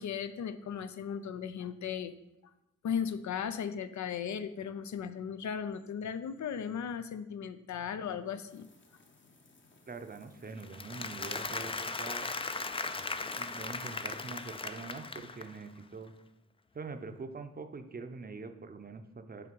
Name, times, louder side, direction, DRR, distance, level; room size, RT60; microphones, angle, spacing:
voice 1, 0.0-2.1 2.8-8.7, left 7 dB, 70° left, 11 dB, 0.5 m, -36 dB
sound 1, 8.5-14.7, left 3 dB, 40° left, 0.9 m, -59 dB
voice 2, 9.9-12.3 13.3-16.1 16.7-19.5, right 4 dB, 30° right, 7 dB, 0.7 m, -44 dB
Applause, 10.6-15.7, left 3 dB, 20° left, 0.4 m, -38 dB
5.8 x 3.5 x 5.2 m, 0.87 s
cardioid pair, 50°, 30 cm